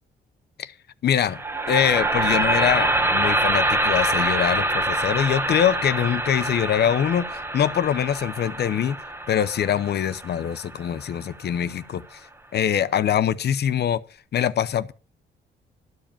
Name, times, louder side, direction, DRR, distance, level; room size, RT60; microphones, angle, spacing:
voice 1, 1.0-1.4 1.7-9.0 9.3-12.2 12.5-14.0 14.3-14.9, left 9 dB, 55° left, 0.8 m, -23 dB
sound 1, 1.2-11.3, right 1 dB, 10° right, 0.8 m, -25 dB
12.5 x 5.0 x 8.8 m
cardioid pair, 90°, 20 cm